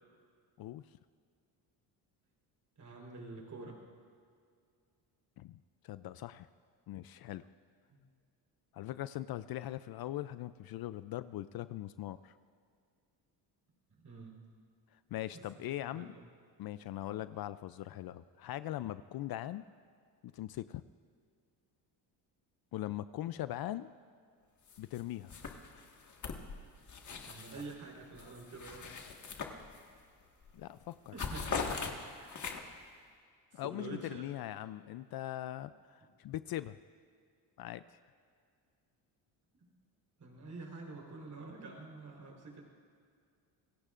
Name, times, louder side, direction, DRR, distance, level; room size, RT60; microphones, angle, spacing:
voice 1, 2.8-3.8 7.9-8.0 14.0-14.4 15.3-16.2 23.3-23.4 27.2-28.9 31.1-31.7 32.1-32.5 33.5-34.3 39.6-39.7 40.2-42.6, right 3 dB, 40° right, 1 dB, 4.1 m, -48 dB
voice 2, 5.8-6.5 6.9-7.5 8.7-12.3 15.1-16.2 16.6-19.7 20.3-20.8 22.7-23.9 24.8-25.4 30.5-31.1 33.5-36.8 37.6-37.8, left 14 dB, 55° left, 14 dB, 0.5 m, -41 dB
sound 1, 24.7-25.0 25.3-27.7 28.1-30.0 30.4-30.6 30.9-32.9, left 5 dB, 40° left, 1.7 m, -41 dB
27.0 x 16.5 x 2.5 m, 2.2 s
cardioid pair, 95°, 45 cm